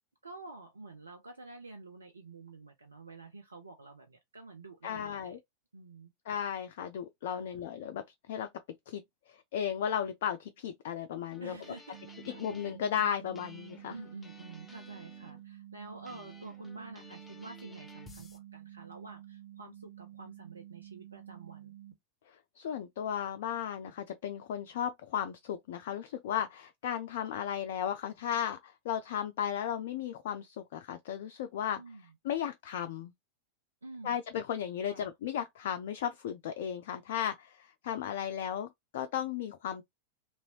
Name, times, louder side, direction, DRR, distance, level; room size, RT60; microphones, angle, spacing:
voice 1, 0.2-5.3 5.7-6.1 7.3-7.5 11.4-12.0 12.3-12.4 13.9-21.7 31.7-32.1 33.8-34.2 34.8-35.1, right 3 dB, 75° right, 0.5 m, -49 dB
voice 2, 4.8-5.4 6.3-8.5 8.9-11.6 12.3-13.9 22.3-31.8 32.2-33.1 34.0-39.8, left 9 dB, 55° left, 0.3 m, -35 dB
sound 1, 11.3-12.8 13.3-15.4 16.0-18.4, left 3 dB, 15° left, 0.7 m, -55 dB
sound 2, 11.9-21.9, right 13 dB, 30° right, 1.5 m, -50 dB
2.9 x 2.7 x 2.7 m
figure-of-eight pair, 90°, 0 cm